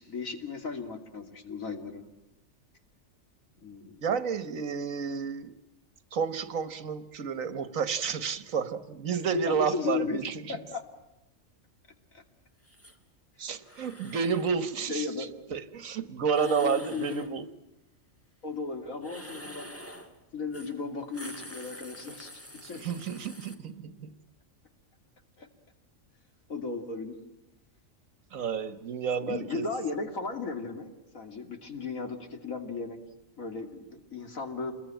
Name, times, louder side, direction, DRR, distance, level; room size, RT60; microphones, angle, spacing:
voice 1, 0.0-2.1 3.6-4.0 9.3-10.2 10.5-10.8 12.1-12.2 14.9-15.4 16.4-17.2 18.4-19.7 20.3-22.8 25.4-25.5 26.5-27.2 29.2-33.0 33.4-34.8, left 4 dB, 85° left, 3.1 m, -35 dB
voice 2, 4.0-5.5 6.1-10.6 13.4-17.5 22.6-24.1 28.3-29.7, right 6 dB, 80° right, 1.6 m, -31 dB
sound 1, 12.6-13.0 13.6-14.5 16.3-17.3 19.0-20.1 20.5-20.7 21.0-23.5, equal, 10° left, 2.4 m, -46 dB
28.0 x 21.5 x 9.1 m
omnidirectional pair, 1.4 m